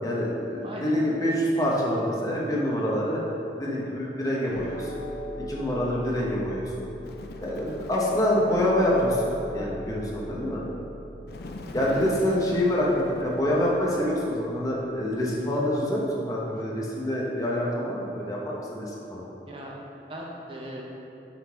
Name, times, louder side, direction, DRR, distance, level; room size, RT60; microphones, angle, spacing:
voice 1, 0.0-4.9 5.5-6.6 7.4-9.2 9.5-10.6 11.7-19.2, left 1 dB, 20° left, -4 dB, 0.8 m, -26 dB
voice 2, 0.6-1.0 11.8-12.1 12.5-12.7 19.5-19.7 20.1-20.8, right 1 dB, 30° right, -2 dB, 0.6 m, -39 dB
sound 1, 4.5-14.9, equal, 90° left, 1.0 m, -41 dB
Bird, 7.0-8.4 11.3-13.8, left 2 dB, 60° left, 0.4 m, -42 dB
5.8 x 3.9 x 4.6 m, 2.9 s
head